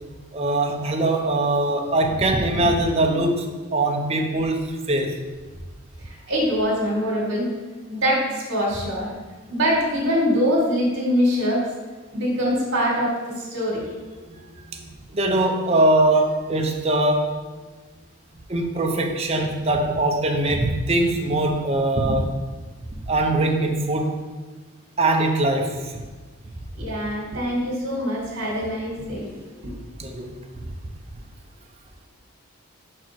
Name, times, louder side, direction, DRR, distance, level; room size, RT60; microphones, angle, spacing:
voice 1, 0.3-5.2 14.3-14.6 15.1-17.3 18.5-22.3 23.1-24.2 25.0-25.9 30.0-30.3, right 2 dB, 30° right, 2 dB, 0.7 m, -22 dB
voice 2, 6.0-7.5 7.9-9.1 9.5-11.7 12.1-13.9 26.8-29.8, equal, 55° right, -5 dB, 1.9 m, -23 dB
5.2 x 4.6 x 6.0 m, 1.3 s
head